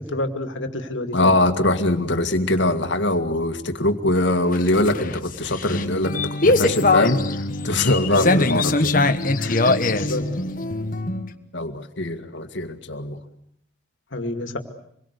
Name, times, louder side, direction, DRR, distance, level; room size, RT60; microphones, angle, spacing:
voice 1, 0.0-1.4 8.1-8.4 8.9-10.6 14.1-14.6, left 1 dB, 90° left, 7 dB, 2.3 m, -29 dB
voice 2, 1.1-8.9 11.5-13.2, left 1 dB, 70° left, 9 dB, 2.1 m, -22 dB
sound 1, 4.5-11.3, left 2 dB, 45° left, 1.4 m, -22 dB
26.5 x 22.0 x 8.3 m, 0.71 s
head